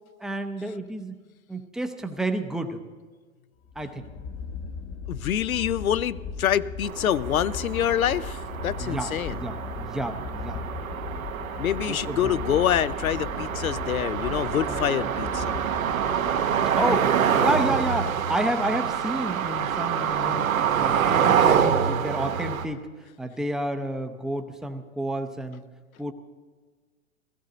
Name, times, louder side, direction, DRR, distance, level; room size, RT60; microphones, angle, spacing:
voice 1, 0.2-1.2 1.5-2.8 3.8-4.1 8.8-10.6 11.9-12.4 14.7-15.1 16.7-20.5 20.8-22.8 23.2-25.6 26.0-26.1, right 1 dB, ahead, 6 dB, 0.6 m, -30 dB
sound 1, 3.6-17.8, left 5 dB, 30° left, 0.8 m, -38 dB
voice 2, 5.1-9.4 11.6-15.6, left 10 dB, 90° left, 17 dB, 0.6 m, -26 dB
sound 2, 6.8-22.7, right 8 dB, 80° right, 1.1 m, -26 dB
16.5 x 14.5 x 3.9 m, 1.4 s
hypercardioid pair, 115°, 41 cm